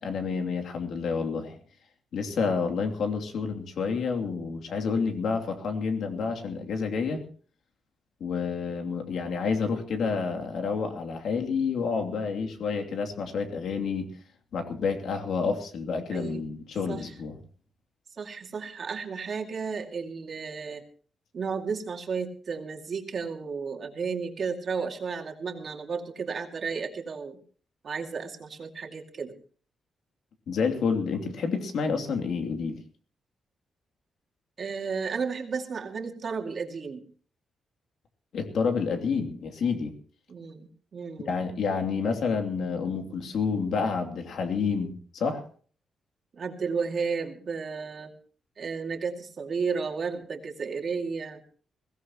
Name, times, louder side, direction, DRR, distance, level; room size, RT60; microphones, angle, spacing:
voice 1, 0.0-1.6 2.1-7.2 8.2-14.1 14.5-17.4 30.5-32.8 38.3-39.9 41.2-45.5, left 5 dB, 65° left, 4 dB, 2.9 m, -29 dB
voice 2, 16.1-16.4 16.9-17.0 18.2-20.8 21.3-27.4 27.8-29.3 34.6-37.0 40.3-41.3 46.3-48.1 48.6-51.4, right 5 dB, 40° right, 3 dB, 2.4 m, -33 dB
22.0 x 17.0 x 3.0 m, 0.43 s
wide cardioid pair, 150°, 0 cm